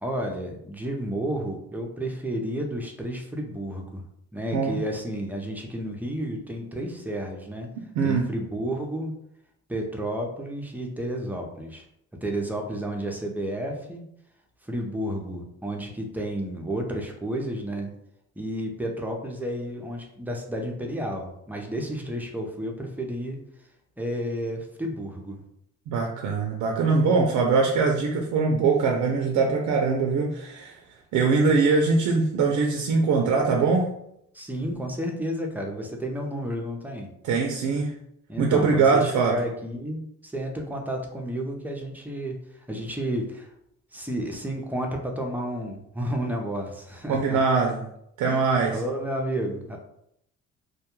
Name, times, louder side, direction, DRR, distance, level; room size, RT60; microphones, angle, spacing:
voice 1, 0.0-4.0 4.3-7.7 8.0-9.1 9.7-11.8 12.2-14.0 14.6-17.9 18.4-23.4 24.0-25.4 34.3-37.1 38.3-43.5 43.9-47.4 48.3-48.4 48.7-49.8, right 1 dB, 5° right, 1 dB, 0.5 m, -31 dB
voice 2, 8.0-8.3 25.9-30.8 31.1-33.9 37.2-37.9 38.4-39.4 47.1-47.8 48.2-48.8, right 4 dB, 75° right, 1 dB, 0.5 m, -22 dB
2.2 x 2.2 x 2.9 m, 0.75 s
cardioid pair, 90°, 30 cm